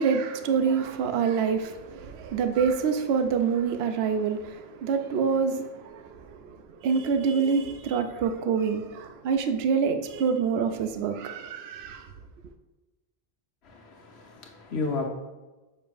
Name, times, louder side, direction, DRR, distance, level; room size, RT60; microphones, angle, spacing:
voice 1, 0.0-12.1, right 6 dB, 75° right, 0.8 m, -26 dB
voice 2, 13.6-15.1, left 3 dB, 80° left, 1.3 m, -33 dB
6.8 x 5.5 x 2.5 m
omnidirectional pair, 1.1 m